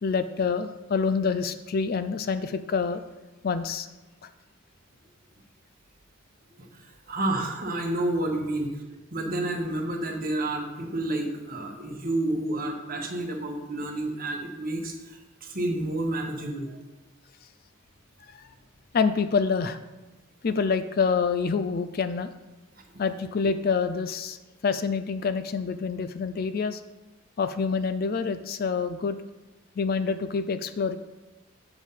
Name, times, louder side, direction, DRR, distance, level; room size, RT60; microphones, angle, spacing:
voice 1, 0.0-3.0 3.4-3.9 18.3-18.4 18.9-19.8 20.4-22.3 23.0-24.4 24.6-26.8 27.4-29.2 29.8-31.0, left 5 dB, 45° left, 11 dB, 0.4 m, -26 dB
voice 2, 7.1-8.7 9.1-16.8, right 1 dB, 40° right, 2 dB, 1.2 m, -30 dB
7.3 x 5.0 x 5.6 m, 1.1 s
head